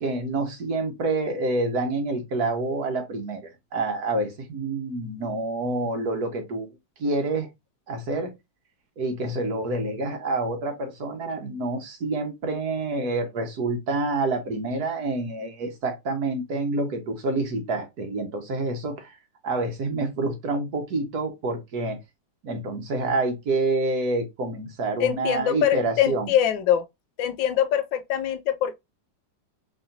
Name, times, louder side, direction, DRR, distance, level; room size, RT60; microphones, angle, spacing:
voice 1, 0.0-6.7 7.0-7.5 7.9-8.3 9.0-19.1 19.4-22.0 22.4-26.3, right 2 dB, 55° right, 1.5 m, -27 dB
voice 2, 25.0-26.8 27.2-28.8, left 10 dB, 85° left, 1.4 m, -23 dB
4.2 x 3.9 x 2.6 m
omnidirectional pair, 2.1 m